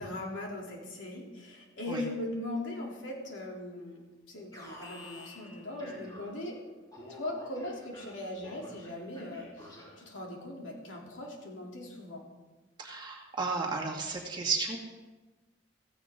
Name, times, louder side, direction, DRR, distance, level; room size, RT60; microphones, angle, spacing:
voice 1, 0.0-6.6 7.1-12.2, left 1 dB, 80° left, -1 dB, 3.3 m, -39 dB
Alarm, 4.5-6.5 6.9-10.2, left 1 dB, 20° left, 4.3 m, -50 dB
voice 2, 12.8-14.8, right 4 dB, 25° right, -1 dB, 2.3 m, -33 dB
16.0 x 15.0 x 3.8 m, 1.2 s
head